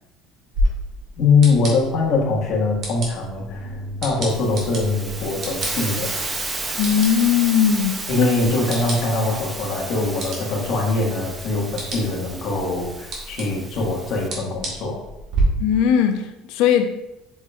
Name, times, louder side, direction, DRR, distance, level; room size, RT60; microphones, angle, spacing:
sound 1, 0.5-15.4, right 1 dB, 45° right, 1.6 m, -33 dB
voice 1, 1.2-6.1 8.1-15.0, left 3 dB, 45° left, 1.6 m, -22 dB
Hiss, 4.3-14.3, right 2 dB, 15° right, 0.5 m, -33 dB
voice 2, 6.8-8.5 15.6-16.9, left 8 dB, 65° left, 0.6 m, -19 dB
7.9 x 5.0 x 2.4 m
cardioid pair, 170°, 0 cm